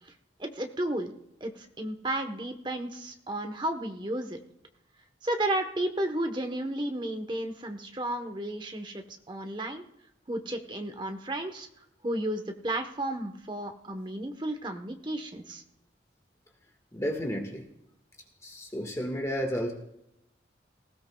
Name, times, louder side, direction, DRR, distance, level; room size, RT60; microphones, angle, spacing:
voice 1, 0.4-1.1 1.4-4.4 5.2-9.8 10.3-11.7 12.0-15.6, right 1 dB, 25° right, 6 dB, 1.0 m, -33 dB
voice 2, 16.9-17.7 18.4-19.7, equal, 15° left, 2 dB, 1.6 m, -32 dB
19.0 x 16.5 x 2.3 m, 0.83 s
head